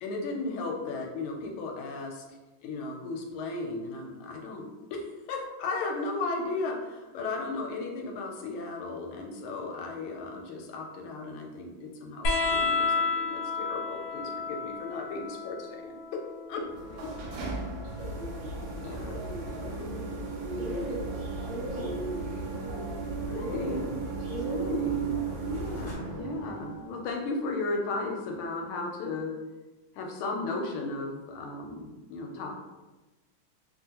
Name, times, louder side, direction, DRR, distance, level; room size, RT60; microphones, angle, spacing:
voice 1, 0.0-16.2 16.5-16.7 18.7-19.2 19.5-19.9 23.3-24.0 24.5-25.2 25.5-29.4 29.9-32.5, left 3 dB, 85° left, 1 dB, 1.5 m, -35 dB
sound 1, 12.2-19.3 20.7-21.5 22.8-22.9, left 4 dB, 70° left, 1.1 m, -33 dB
sound 2, 16.6-26.9, right 6 dB, 75° right, 0.9 m, -37 dB
voice 2, 16.8-17.4 17.7-19.9 20.9-25.5 25.9-26.3, right 1 dB, 55° right, -7 dB, 1.2 m, -50 dB
sound 3, 18.0-25.9, right 1 dB, 35° right, 0.8 m, -37 dB
3.5 x 2.4 x 2.8 m, 1.1 s
omnidirectional pair, 2.3 m